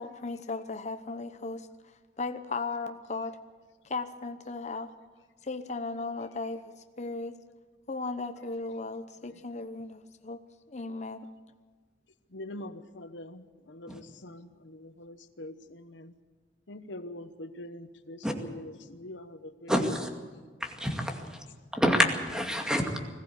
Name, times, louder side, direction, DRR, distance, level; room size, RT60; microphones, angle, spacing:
voice 1, 0.0-1.7 2.2-3.4 3.8-4.9 5.4-6.6 7.0-7.3 7.9-11.3, left 3 dB, 40° left, 0.9 m, -36 dB
voice 2, 12.3-16.1 16.7-19.7, left 1 dB, 90° left, 1.0 m, -44 dB
voice 3, 19.7-20.1 20.6-21.4 21.7-23.0, equal, 5° right, 2.2 m, -28 dB
21.0 x 15.0 x 8.3 m
head